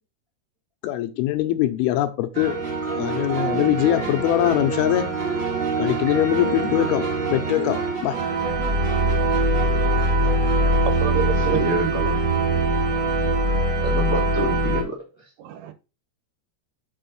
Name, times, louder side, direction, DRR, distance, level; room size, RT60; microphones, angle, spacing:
voice 1, 0.8-2.6 3.0-5.1 5.8-7.0 7.3-8.2, left 13 dB, 80° left, 8 dB, 2.5 m, -22 dB
sound 1, 2.4-14.8, right 2 dB, 40° right, 1.7 m, -23 dB
voice 2, 10.2-11.9 12.9-13.0 15.4-15.7, right 9 dB, 85° right, 10 dB, 3.0 m, -30 dB
voice 3, 11.5-12.2 13.8-15.0, right 1 dB, 20° left, -2 dB, 0.7 m, -27 dB
6.2 x 4.5 x 5.2 m, 0.30 s
omnidirectional pair, 4.6 m